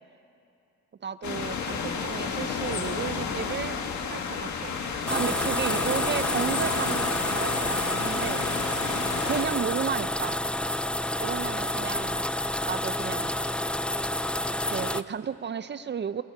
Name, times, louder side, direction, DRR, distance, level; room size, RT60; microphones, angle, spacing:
voice 1, 1.0-3.8 4.1-8.5 9.2-10.4 11.1-12.3 12.7-13.3 14.7-16.2, right 7 dB, 35° right, 13 dB, 0.6 m, -33 dB
sound 1, 1.2-9.4, left 5 dB, 70° left, 1.8 m, -32 dB
sound 2, 5.1-15.0, left 1 dB, 5° left, 0.4 m, -29 dB
29.5 x 18.5 x 4.9 m, 2.8 s
cardioid pair, 90°, 30 cm